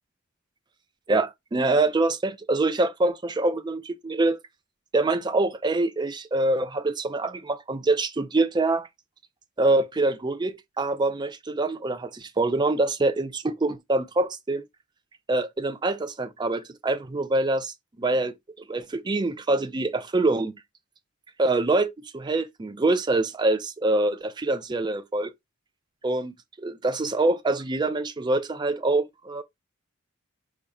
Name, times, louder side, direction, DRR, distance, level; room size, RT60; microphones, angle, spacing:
voice 1, 1.1-4.4 4.9-8.9 9.6-14.6 15.3-20.5 21.4-25.3 26.0-29.4, right 2 dB, 20° right, 0.4 m, -25 dB
5.0 x 2.2 x 4.1 m
head